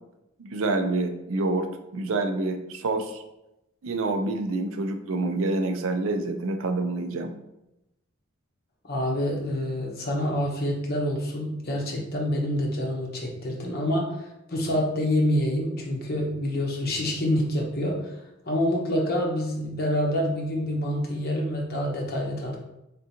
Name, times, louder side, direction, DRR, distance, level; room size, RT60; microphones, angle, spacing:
voice 1, 0.4-3.2 3.8-7.3, right 2 dB, 70° right, 6 dB, 0.5 m, -27 dB
voice 2, 8.8-18.1 18.5-22.6, left 1 dB, 50° left, -1 dB, 0.9 m, -27 dB
3.7 x 3.6 x 2.9 m, 0.89 s
head